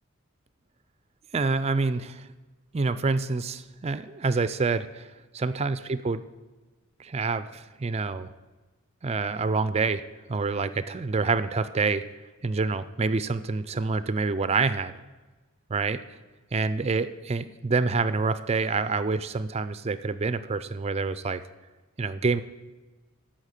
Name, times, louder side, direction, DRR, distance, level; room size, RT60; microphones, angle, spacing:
voice 1, 1.3-2.3 2.7-5.1 5.3-6.2 7.0-8.3 9.0-10.0 10.3-12.0 12.4-15.0 15.7-16.0 16.5-21.4 22.0-22.4, right 4 dB, 30° right, 13 dB, 0.4 m, -27 dB
14.0 x 5.8 x 6.5 m, 1.3 s
head